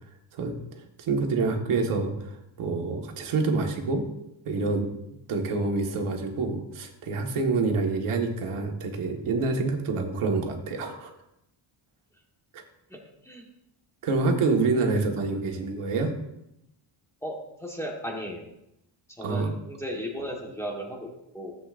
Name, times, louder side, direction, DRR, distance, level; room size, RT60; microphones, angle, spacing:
voice 1, 1.0-4.0 4.4-4.9 5.3-11.1 12.5-12.6 14.0-16.1 19.2-19.5, right 3 dB, 85° right, 2 dB, 1.6 m, -27 dB
voice 2, 12.9-13.5 17.2-18.5 19.1-21.5, equal, 5° left, -1 dB, 1.3 m, -36 dB
13.5 x 8.0 x 2.5 m, 0.85 s
wide cardioid pair, 180°, 49 cm